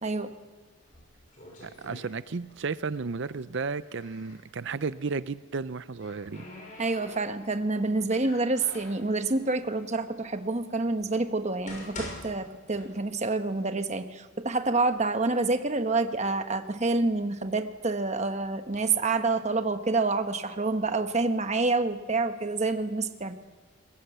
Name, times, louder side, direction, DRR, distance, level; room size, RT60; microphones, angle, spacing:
sound 1, 0.8-2.7 3.0-4.4 5.5-7.6 8.1-9.1 9.8-9.9 10.6-10.7 11.3-13.3 13.6-13.7 14.5-14.6 14.9-15.6 16.1-17.8 18.4-18.8, left 1 dB, 40° left, 6.0 m, -45 dB
voice 1, 1.6-6.5, right 4 dB, 60° right, 16 dB, 0.5 m, -33 dB
voice 2, 6.8-23.3, right 3 dB, 35° right, 8 dB, 1.0 m, -28 dB
20.5 x 17.0 x 8.1 m, 1.3 s
head